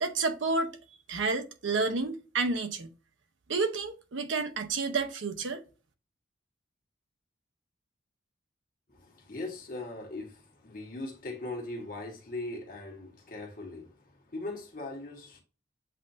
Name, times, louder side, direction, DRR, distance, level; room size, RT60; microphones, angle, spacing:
voice 1, 0.0-0.8 1.1-2.9 3.5-5.6, right 3 dB, 70° right, 0.7 m, -30 dB
voice 2, 8.9-15.4, left 2 dB, 45° left, 1.3 m, -40 dB
7.5 x 2.5 x 2.6 m
head